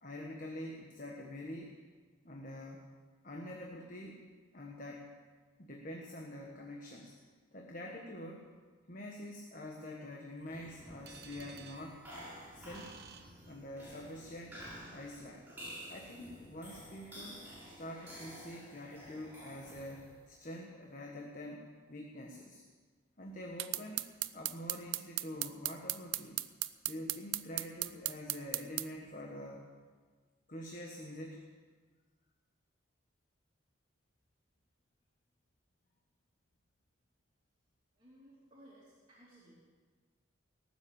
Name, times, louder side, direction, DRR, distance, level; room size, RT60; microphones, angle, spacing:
voice 1, 0.0-1.8 2.2-2.9 3.2-4.3 4.5-5.1 5.6-7.1 7.5-8.5 8.9-12.0 12.5-13.0 13.5-15.5 15.9-17.4 17.8-22.6 23.2-24.0 24.3-26.4 26.8-29.7 30.5-31.5, left 1 dB, 40° left, 0 dB, 1.4 m, -46 dB
sound 1, 10.4-20.3, equal, 10° right, 5.8 m, -51 dB
sound 2, 11.1-14.1, right 8 dB, 50° right, 0.9 m, -57 dB
sound 3, 23.6-28.9, right 16 dB, 70° right, 0.5 m, -36 dB
voice 2, 38.0-39.6, right 1 dB, 25° right, -8 dB, 2.8 m, -59 dB
19.0 x 7.3 x 8.7 m, 1.5 s
head